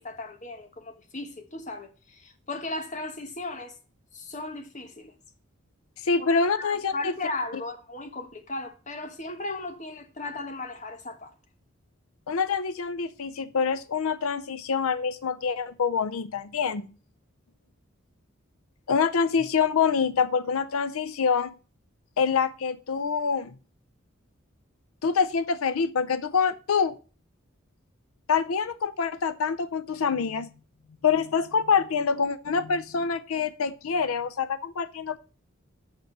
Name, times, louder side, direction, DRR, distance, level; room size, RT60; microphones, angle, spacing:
voice 1, 0.0-3.7 4.1-5.1 6.6-11.3, left 2 dB, 35° left, 1.2 m, -36 dB
voice 2, 6.0-7.1 12.3-16.9 18.9-21.5 22.2-23.5 25.0-26.9 28.3-30.5 31.0-35.2, left 5 dB, 90° left, 0.5 m, -26 dB
8.1 x 6.1 x 6.5 m
head